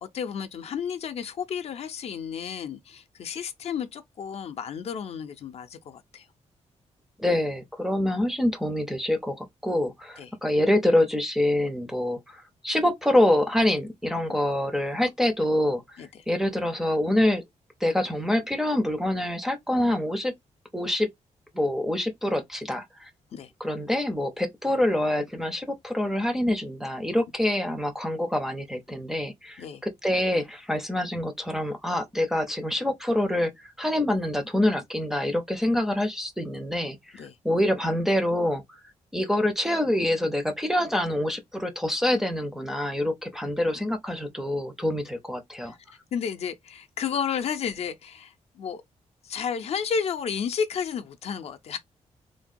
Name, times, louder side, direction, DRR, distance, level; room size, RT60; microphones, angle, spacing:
voice 1, 0.0-6.3 10.2-10.3 14.3-14.4 16.0-16.2 23.3-23.5 29.6-29.8 37.1-37.4 45.6-45.8 46.1-48.8 49.2-51.8, left 7 dB, 60° left, 0.5 m, -32 dB
voice 2, 7.2-17.4 17.8-20.3 20.7-21.1 21.5-23.1 23.6-38.6 39.1-45.8, left 1 dB, 5° right, 0.4 m, -26 dB
3.3 x 2.2 x 2.5 m
wide cardioid pair, 180°, 12 cm